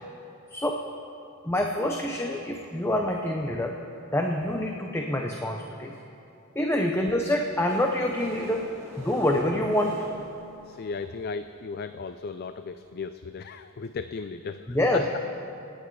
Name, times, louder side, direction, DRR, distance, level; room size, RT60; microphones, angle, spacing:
voice 1, 0.5-0.9 1.4-3.8 4.1-6.0 6.5-8.6 9.0-10.0 14.7-15.0, left 1 dB, 10° left, 2 dB, 0.7 m, -26 dB
sound 1, 7.7-11.5 12.2-12.3 12.5-12.6 12.8-12.9 13.2-13.3, equal, 10° right, 4.7 m, -45 dB
voice 2, 10.7-15.0, left 4 dB, 45° left, 11 dB, 0.4 m, -36 dB
27.5 x 9.2 x 4.7 m, 2.8 s
head